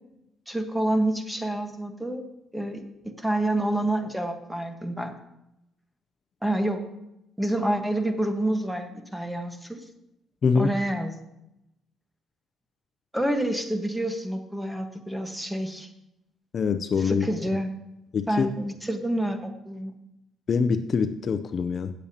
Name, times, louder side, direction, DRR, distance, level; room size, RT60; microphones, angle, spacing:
voice 1, 0.5-2.2 2.5-5.1 6.4-6.8 7.4-9.8 10.5-11.1 13.1-15.9 17.0-17.7 18.3-19.9, right 1 dB, 5° right, 6 dB, 1.3 m, -28 dB
voice 2, 10.4-10.7 16.5-17.2 18.1-18.5 20.5-21.9, left 5 dB, 50° left, 10 dB, 0.5 m, -24 dB
17.5 x 7.2 x 2.8 m, 0.87 s
cardioid pair, 100°, 0 cm